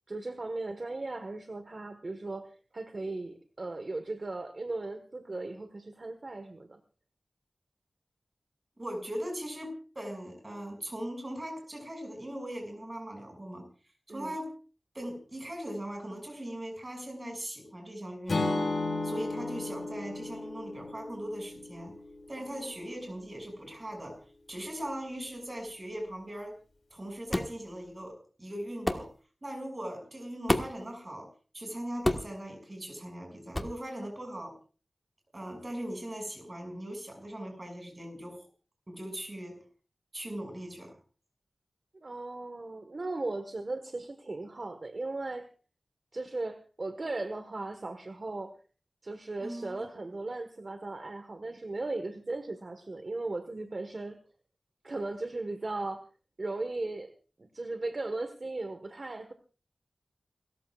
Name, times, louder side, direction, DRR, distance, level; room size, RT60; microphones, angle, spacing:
voice 1, 0.1-6.8 14.1-14.3 22.4-22.8 42.0-45.5 46.1-48.5 49.0-54.2 54.8-56.1 56.4-57.1 57.4-59.3, right 2 dB, 50° right, 8 dB, 1.5 m, -37 dB
voice 2, 8.8-13.7 14.1-14.5 14.9-18.7 19.0-22.0 22.3-24.2 24.5-26.6 26.9-29.1 29.4-31.3 31.5-34.5 35.3-38.5 38.9-39.6 40.1-41.0 49.4-49.8, right 1 dB, 30° right, 3 dB, 6.5 m, -40 dB
Acoustic guitar / Strum, 18.3-22.4, left 2 dB, 65° left, 5.4 m, -34 dB
sound 1, 27.3-27.6 28.9-29.1 30.5-30.8 32.0-32.4 33.5-33.8, left 1 dB, 20° left, 1.6 m, -29 dB
29.0 x 14.0 x 2.5 m, 0.37 s
wide cardioid pair, 80°, 0 cm